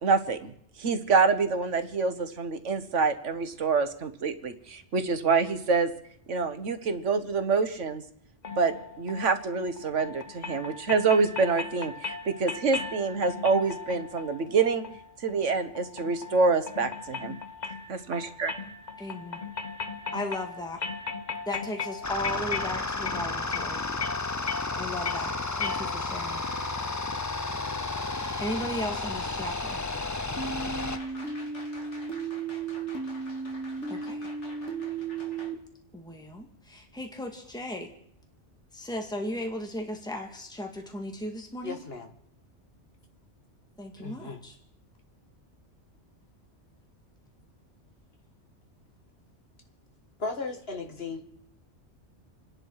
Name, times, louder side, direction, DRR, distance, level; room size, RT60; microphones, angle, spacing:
voice 1, 0.0-5.9 6.3-8.0 8.6-14.8 15.2-17.3 17.9-18.5, right 4 dB, 85° right, 9 dB, 1.6 m, -26 dB
sound 1, 8.4-26.3, left 5 dB, 40° left, 1.1 m, -38 dB
voice 2, 19.0-19.4 20.1-20.8 21.5-23.8 24.8-25.3 25.6-26.4 28.4-29.8 33.9-34.3 35.9-37.9 38.7-41.8 43.8-44.6, left 1 dB, 5° left, 2 dB, 1.9 m, -36 dB
sound 2, 22.0-31.0, left 3 dB, 20° left, 0.5 m, -32 dB
sound 3, 30.4-35.5, right 4 dB, 75° left, 2.6 m, -34 dB
voice 3, 41.6-42.1 44.0-44.4 50.2-51.2, left 3 dB, 55° left, 4 dB, 2.0 m, -36 dB
28.5 x 10.5 x 4.8 m, 0.69 s
omnidirectional pair, 1.2 m